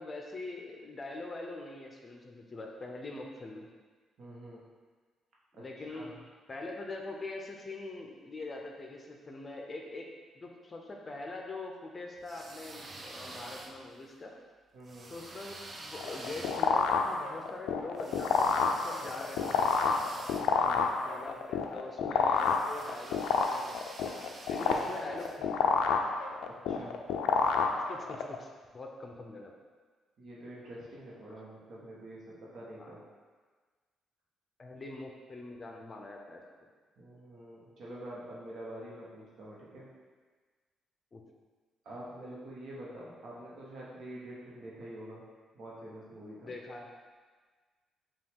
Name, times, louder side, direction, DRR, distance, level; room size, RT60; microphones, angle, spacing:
voice 1, 0.0-3.7 5.5-6.1 6.5-10.1 10.3-14.3 15.1-19.8 21.0-23.8 24.5-25.5 27.7-29.5 32.8-33.1 34.6-36.4 41.1-41.2 46.4-46.9, left 2 dB, 35° left, 1 dB, 0.5 m, -43 dB
voice 2, 4.2-4.6 5.5-6.1 14.7-15.1 20.5-20.9 24.7-24.8 26.7-27.0 30.2-33.0 37.0-39.9 41.8-45.2 45.5-46.5, right 1 dB, 65° right, -5 dB, 1.0 m, -46 dB
sound 1, 12.2-14.1 14.8-21.2 22.4-25.4, right 2 dB, 35° right, 0.5 m, -48 dB
sound 2, 15.9-28.3, left 6 dB, 85° left, 0.3 m, -29 dB
5.3 x 2.4 x 3.6 m, 1.4 s
cardioid pair, 90°, 0 cm